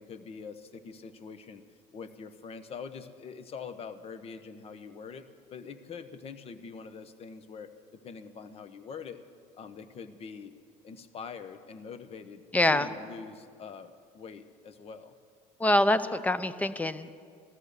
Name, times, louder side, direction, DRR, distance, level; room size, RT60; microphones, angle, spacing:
voice 1, 0.0-1.6 1.9-9.2 9.6-10.5 10.8-15.1, left 5 dB, 40° left, 10 dB, 1.0 m, -44 dB
voice 2, 12.5-12.9 15.6-17.1, left 1 dB, 10° left, 13 dB, 0.6 m, -25 dB
16.5 x 13.0 x 6.7 m, 2.1 s
cardioid pair, 120°, 16 cm